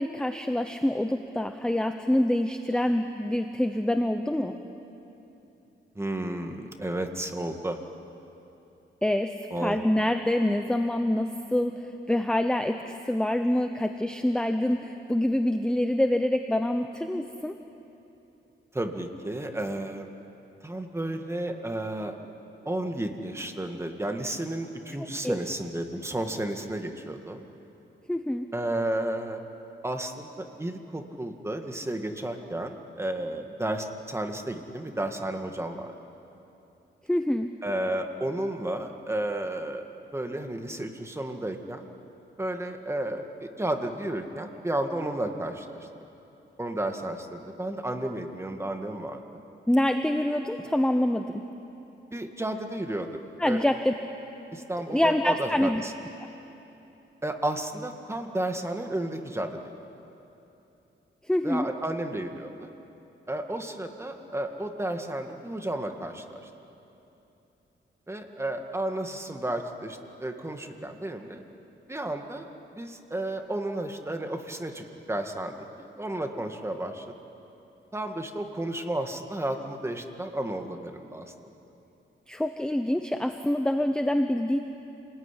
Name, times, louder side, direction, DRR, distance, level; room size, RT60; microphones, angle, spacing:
voice 1, 0.0-4.6 9.0-9.3 9.6-17.5 25.2-25.4 28.1-28.5 37.1-37.5 49.7-51.4 53.4-53.9 54.9-55.8 61.3-61.7 82.3-84.6, left 1 dB, 5° left, 7 dB, 0.9 m, -26 dB
voice 2, 6.0-7.8 9.5-9.8 18.7-20.1 20.6-22.2 22.7-27.5 28.5-29.4 29.8-35.9 37.6-39.8 40.1-41.9 42.4-45.8 46.6-49.4 52.1-53.7 54.5-55.9 57.2-59.7 61.4-62.7 63.3-66.4 68.1-71.4 71.9-77.1 77.9-81.3, right 1 dB, 15° right, 4 dB, 2.0 m, -32 dB
28.0 x 20.5 x 10.0 m, 3.0 s
wide cardioid pair, 125°, 20 cm